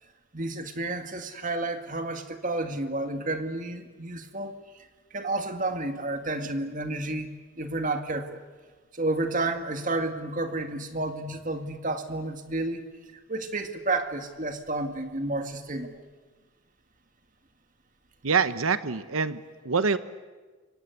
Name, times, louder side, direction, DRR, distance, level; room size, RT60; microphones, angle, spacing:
voice 1, 0.3-4.6 5.1-8.4 8.9-12.8 13.3-16.0, right 2 dB, 40° right, 7 dB, 2.0 m, -31 dB
voice 2, 18.2-20.0, right 5 dB, 85° right, 13 dB, 0.9 m, -25 dB
28.0 x 24.5 x 8.0 m, 1.3 s
head